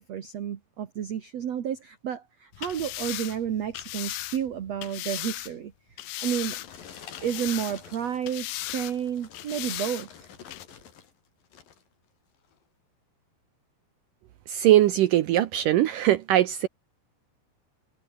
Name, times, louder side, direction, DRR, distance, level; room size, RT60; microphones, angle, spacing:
voice 1, 0.0-5.7 6.2-6.6 7.2-8.5 8.7-10.3, right 9 dB, 55° right, 1.9 m, -31 dB
sound 1, 2.5-5.5 6.0-6.8 7.1-8.0 8.3-8.9 9.3-10.1 10.5-10.6, left 16 dB, 75° left, 2.4 m, -36 dB
sound 2, 6.0-11.1 11.4-11.9 12.4-12.6, left 8 dB, 55° left, 4.5 m, -48 dB
voice 2, 14.5-16.7, right 13 dB, 85° right, 1.8 m, -21 dB
omnidirectional pair, 5.2 m